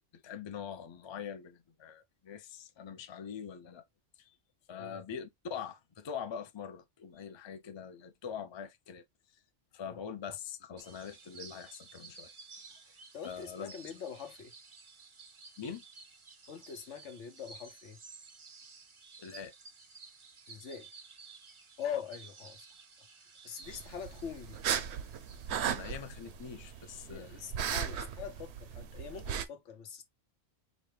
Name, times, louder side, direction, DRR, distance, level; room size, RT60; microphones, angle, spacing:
voice 1, 0.1-3.8 4.2-4.3 4.7-9.0 9.7-12.3 13.2-13.7 15.6-15.8 19.2-19.5 25.7-27.4, left 7 dB, 40° left, 0.4 m, -43 dB
sound 1, 10.8-26.7, right 4 dB, 40° right, 0.5 m, -54 dB
voice 2, 12.9-14.5 16.5-18.0 20.5-20.9 21.8-22.7 23.4-24.6 27.1-30.0, left 7 dB, 90° left, 1.2 m, -43 dB
sound 2, 23.6-29.5, right 8 dB, 70° right, 0.8 m, -37 dB
5.1 x 2.2 x 3.1 m
omnidirectional pair, 1.2 m